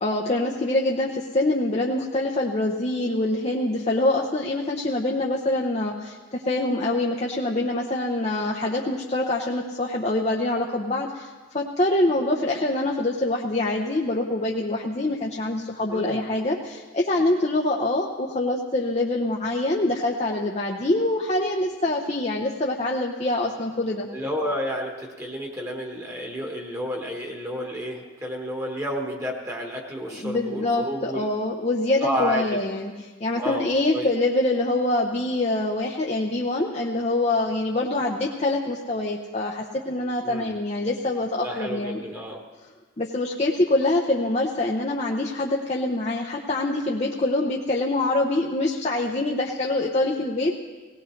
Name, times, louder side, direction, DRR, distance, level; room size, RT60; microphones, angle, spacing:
voice 1, 0.0-24.1 30.1-42.0 43.0-50.5, left 2 dB, 35° left, -1 dB, 0.7 m, -25 dB
voice 2, 15.9-16.3 24.1-31.2 32.0-32.6 33.4-34.1 40.2-40.5 41.4-42.4, equal, 15° right, 0 dB, 1.3 m, -31 dB
18.0 x 17.5 x 3.2 m, 1.3 s
head